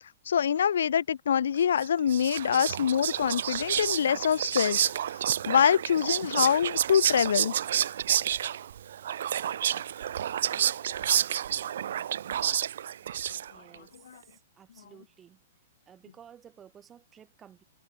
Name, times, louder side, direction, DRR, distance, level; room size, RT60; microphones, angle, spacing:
voice 1, 0.3-4.8 5.5-7.5, left 8 dB, 80° left, 0.4 m, -25 dB
Whispering, 1.8-13.7, right 10 dB, 60° right, 2.2 m, -29 dB
voice 2, 13.5-15.4 15.9-17.6, right 9 dB, 15° right, 5.9 m, -54 dB
hypercardioid pair, 170°, 0 cm